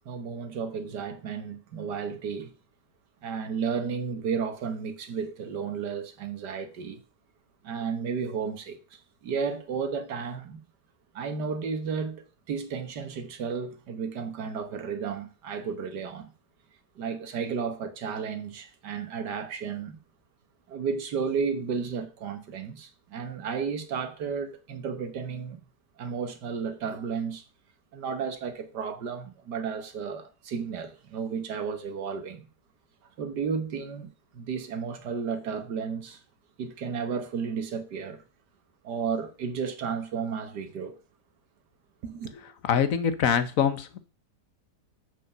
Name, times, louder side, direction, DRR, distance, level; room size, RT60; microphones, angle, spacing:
voice 1, 0.1-2.5 3.2-7.0 7.6-10.6 11.1-16.3 17.0-20.0 20.7-25.6 26.0-27.4 27.9-32.5 33.2-36.2 36.6-38.2 38.8-41.0 42.0-42.3, right 6 dB, 80° right, 1.8 m, -33 dB
voice 2, 42.6-44.0, left 7 dB, 55° left, 1.3 m, -24 dB
7.6 x 5.5 x 6.7 m
omnidirectional pair, 1.8 m